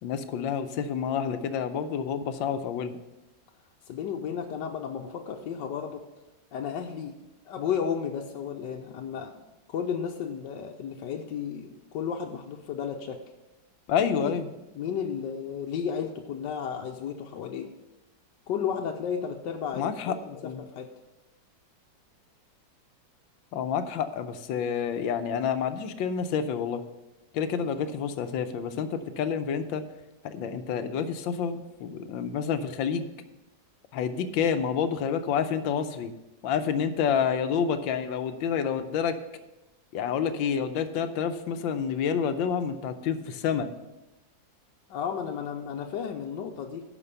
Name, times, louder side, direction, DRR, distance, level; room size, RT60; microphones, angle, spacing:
voice 1, 0.0-3.0 13.9-14.5 19.7-20.1 20.4-20.6 23.5-26.8 27.3-29.8 30.2-33.1 33.9-36.1 36.4-39.2 39.9-43.7, left 7 dB, 90° left, 10 dB, 1.5 m, -28 dB
voice 2, 3.9-6.0 6.5-7.2 7.5-9.3 9.7-13.2 14.2-14.3 14.7-17.7 18.5-20.9 44.9-46.8, left 7 dB, 75° left, 2 dB, 1.3 m, -33 dB
11.0 x 5.1 x 6.8 m, 1.0 s
omnidirectional pair, 2.1 m